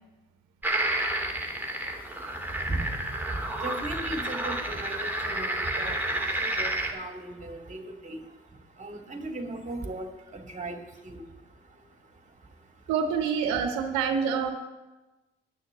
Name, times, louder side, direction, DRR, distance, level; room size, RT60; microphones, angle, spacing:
sound 1, 0.6-6.9, right 1 dB, 5° right, 2.5 m, -30 dB
voice 1, 3.0-12.9, right 1 dB, 25° right, 3 dB, 2.3 m, -40 dB
voice 2, 12.9-14.5, right 6 dB, 75° right, 6 dB, 0.8 m, -26 dB
10.5 x 6.4 x 8.0 m, 1.2 s
hypercardioid pair, 50°, 29 cm